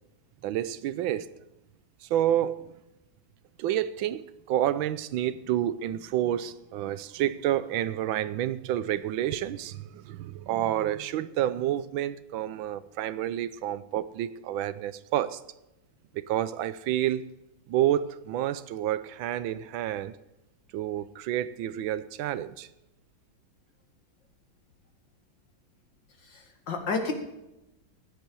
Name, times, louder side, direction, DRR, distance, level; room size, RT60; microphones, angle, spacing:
voice 1, 0.4-1.3 2.0-2.7 3.6-15.4 16.1-17.3 17.7-20.1 20.7-22.7, right 12 dB, 90° right, 14 dB, 1.4 m, -29 dB
voice 2, 26.2-27.1, left 4 dB, 65° left, 4 dB, 2.6 m, -31 dB
15.5 x 10.0 x 4.7 m, 0.90 s
omnidirectional pair, 2.1 m